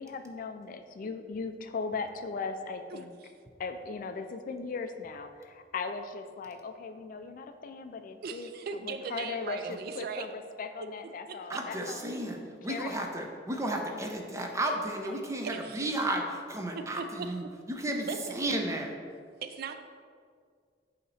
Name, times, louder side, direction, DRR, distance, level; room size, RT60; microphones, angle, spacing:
voice 1, 0.0-3.1 3.6-8.5 8.9-12.0 12.7-13.2, left 4 dB, 50° left, 8 dB, 0.3 m, -38 dB
voice 2, 8.2-10.3 11.3-11.4 15.4-16.0 16.8-17.3 18.1-18.4 19.4-19.8, right 5 dB, 55° right, 8 dB, 0.3 m, -38 dB
voice 3, 11.5-12.4 12.6-18.9, right 1 dB, 15° right, 2 dB, 0.6 m, -33 dB
8.2 x 2.9 x 4.2 m, 2.1 s
head